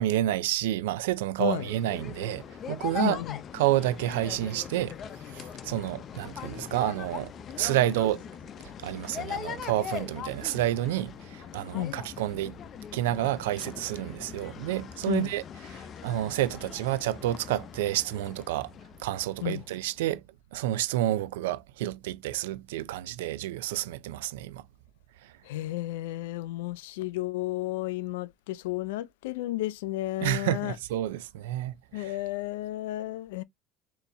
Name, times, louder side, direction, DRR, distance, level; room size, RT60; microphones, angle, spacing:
voice 1, 0.0-3.2 3.5-5.0 5.2-8.2 8.6-12.6 12.9-15.4 15.7-18.7 19.0-20.2 20.5-24.6 25.2-25.3 30.2-32.1, right 14 dB, 85° right, 0.4 m, -29 dB
voice 2, 1.4-1.7 3.0-3.4 11.7-12.0 15.1-15.3 19.4-19.6 25.4-30.8 31.9-33.4, left 16 dB, 85° left, 0.4 m, -32 dB
sound 1, 1.4-19.9, left 8 dB, 45° left, 0.6 m, -41 dB
4.0 x 2.9 x 3.4 m
hypercardioid pair, 80°, 0 cm